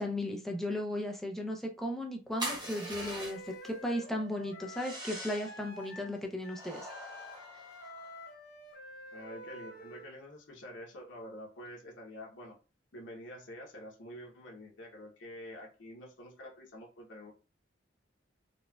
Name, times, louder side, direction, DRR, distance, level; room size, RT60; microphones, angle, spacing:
voice 1, 0.0-6.9, left 1 dB, ahead, 1 dB, 0.5 m, -36 dB
sound 1, 2.4-3.7 4.7-5.6 6.5-8.2, right 1 dB, 25° right, 1.0 m, -42 dB
Wind instrument woodwind instrument, 2.6-10.1, equal, 55° left, 0.9 m, -48 dB
voice 2, 9.1-12.6 12.9-17.3, left 1 dB, 90° left, -2 dB, 0.8 m, -47 dB
4.1 x 2.2 x 2.3 m, 0.33 s
head